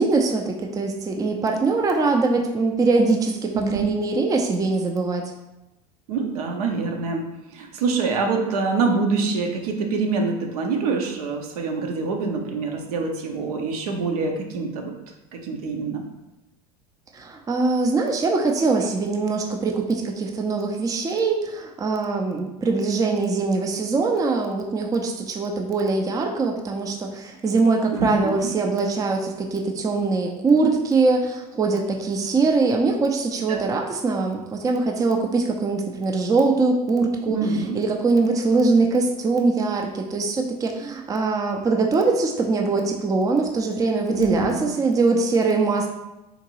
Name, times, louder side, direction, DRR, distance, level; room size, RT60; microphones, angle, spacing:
voice 1, 0.0-5.3 17.1-37.5 37.7-45.9, right 3 dB, 15° right, 2 dB, 0.4 m, -22 dB
voice 2, 3.5-3.9 6.1-7.2 7.5-14.9 15.3-16.0 27.9-28.5 33.5-33.6 37.3-37.8 44.1-44.6, right 4 dB, 70° right, 2 dB, 0.7 m, -25 dB
3.8 x 2.6 x 2.9 m, 0.97 s
hypercardioid pair, 80°, 20 cm